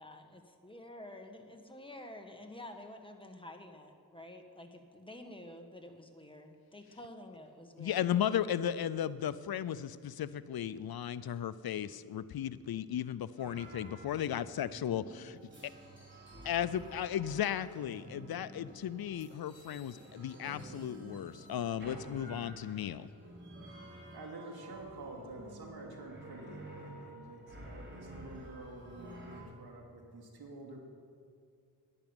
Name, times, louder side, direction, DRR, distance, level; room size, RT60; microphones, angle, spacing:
voice 1, 0.0-8.5, left 1 dB, 15° left, 4 dB, 1.5 m, -50 dB
voice 2, 7.8-15.7 16.4-23.1, left 10 dB, 75° left, 16 dB, 0.6 m, -35 dB
sound 1, 13.4-29.4, right 1 dB, 30° right, 4.0 m, -51 dB
voice 3, 23.7-30.8, right 2 dB, 80° right, 0 dB, 2.7 m, -49 dB
11.0 x 11.0 x 8.9 m, 2.2 s
cardioid pair, 80°, 37 cm